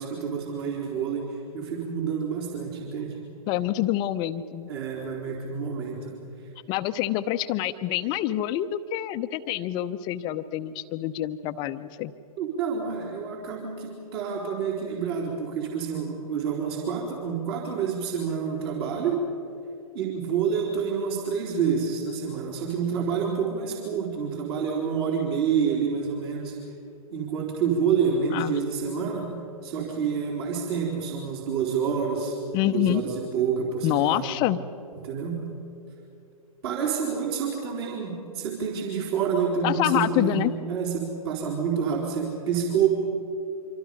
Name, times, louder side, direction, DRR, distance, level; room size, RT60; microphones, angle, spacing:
voice 1, 0.0-3.2 4.7-6.2 12.4-19.2 19.9-26.6 27.1-32.4 32.6-34.3 35.0-35.5 36.6-42.9, right 6 dB, 40° right, -1 dB, 4.0 m, -28 dB
voice 2, 3.5-4.7 6.7-12.1 28.3-28.6 32.5-33.0 33.8-34.6 39.6-40.5, left 13 dB, 25° left, 11 dB, 0.7 m, -26 dB
25.5 x 25.5 x 5.4 m, 2.7 s
figure-of-eight pair, 120°, 19 cm